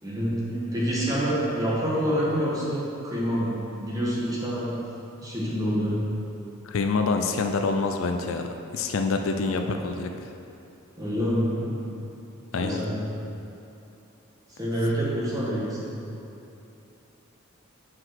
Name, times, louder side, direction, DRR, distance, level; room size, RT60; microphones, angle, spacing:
voice 1, 0.0-4.9 5.2-6.0 11.0-11.9 12.6-13.1 14.5-15.9, equal, 15° right, -6 dB, 1.5 m, -27 dB
voice 2, 6.6-8.5 8.7-10.1 12.5-12.9, left 4 dB, 70° left, 5 dB, 0.5 m, -26 dB
5.9 x 5.0 x 5.8 m, 2.8 s
head